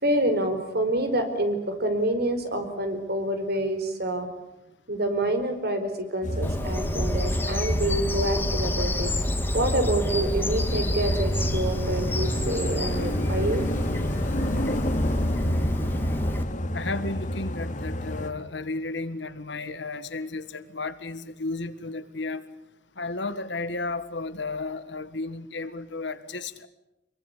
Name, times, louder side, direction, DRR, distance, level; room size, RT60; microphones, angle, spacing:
voice 1, 0.0-4.3 4.9-9.1 9.5-13.7, right 1 dB, 60° right, 8 dB, 4.7 m, -27 dB
sound 1, 6.2-18.3, left 1 dB, 45° left, 2.3 m, -30 dB
Bird vocalization bird call bird song, 6.4-16.4, left 1 dB, 10° left, 2.3 m, -28 dB
voice 2, 16.7-22.4 23.0-26.7, left 3 dB, 70° left, 12 dB, 1.7 m, -33 dB
26.0 x 23.0 x 8.4 m, 0.88 s
head